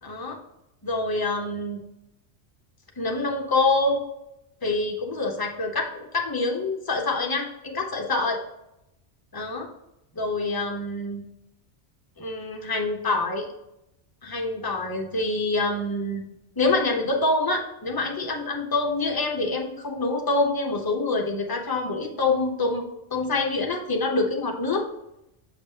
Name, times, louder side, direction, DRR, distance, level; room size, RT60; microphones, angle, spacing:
voice 1, 0.0-0.4 0.8-1.8 3.0-4.1 4.6-8.4 9.3-9.7 10.1-11.2 12.2-13.5 14.2-16.2 16.6-22.8 23.1-24.9, left 2 dB, 20° left, 1 dB, 0.8 m, -26 dB
6.7 x 5.3 x 2.8 m, 0.87 s
omnidirectional pair, 1.2 m